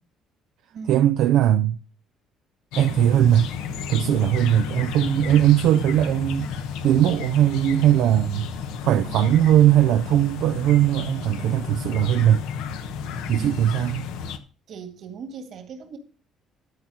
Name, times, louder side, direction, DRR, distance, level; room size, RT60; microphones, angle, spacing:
voice 1, 0.9-1.8 2.8-3.5 3.9-8.5 8.8-12.4 13.3-14.1, right 11 dB, 75° right, 0.5 m, -19 dB
sound 1, 2.7-14.4, left 6 dB, 85° left, 1.0 m, -32 dB
voice 2, 9.0-9.6 13.3-13.8 14.7-16.0, right 5 dB, 60° right, 2.1 m, -39 dB
12.5 x 4.4 x 6.4 m
cardioid pair, 95°, 0 cm